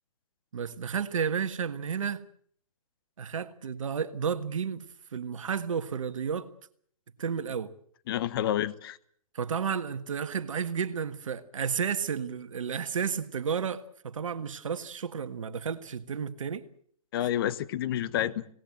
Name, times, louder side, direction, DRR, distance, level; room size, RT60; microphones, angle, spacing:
voice 1, 0.5-2.2 3.2-6.5 7.2-7.7 9.3-16.6, right 7 dB, 60° right, 1.6 m, -32 dB
voice 2, 8.1-9.0 17.1-18.4, left 11 dB, 40° left, 1.1 m, -29 dB
26.0 x 18.5 x 7.8 m
figure-of-eight pair, 135°, 18 cm